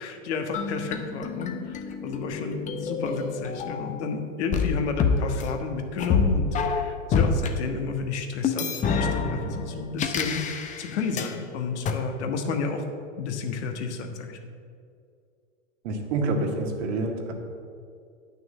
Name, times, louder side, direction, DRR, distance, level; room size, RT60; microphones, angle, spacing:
voice 1, 0.0-12.8 13.2-14.4, left 5 dB, 60° left, 5 dB, 1.5 m, -31 dB
sound 1, 0.5-4.1 4.5-7.5 8.4-11.3 11.9-12.0, left 5 dB, 20° left, 0.7 m, -27 dB
voice 2, 15.8-17.3, right 2 dB, 60° right, 3 dB, 1.9 m, -27 dB
9.3 x 6.4 x 7.3 m, 2.4 s
hypercardioid pair, 125°, 38 cm